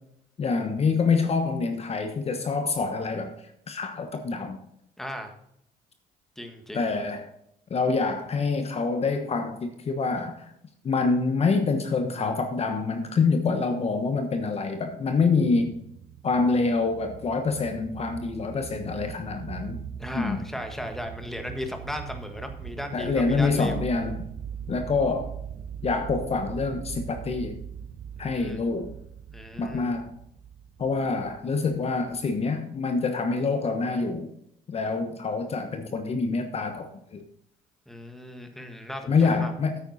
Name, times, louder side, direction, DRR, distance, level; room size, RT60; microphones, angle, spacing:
voice 1, 0.4-3.3 3.7-4.6 6.7-7.3 7.7-10.5 10.8-15.8 16.2-19.8 20.1-20.5 22.9-24.3 24.7-25.3 25.8-27.6 28.2-28.9 29.6-30.1 30.8-34.3 34.7-37.2 39.1-39.8, left 4 dB, 35° left, 7 dB, 1.2 m, -26 dB
voice 2, 5.0-5.3 6.4-6.8 20.0-23.8 28.2-28.6 29.3-30.0 37.9-39.5, equal, ahead, 5 dB, 1.6 m, -36 dB
sound 1, 15.4-32.4, right 8 dB, 45° right, 0.8 m, -40 dB
9.1 x 8.9 x 4.2 m, 0.75 s
cardioid pair, 110°, 17 cm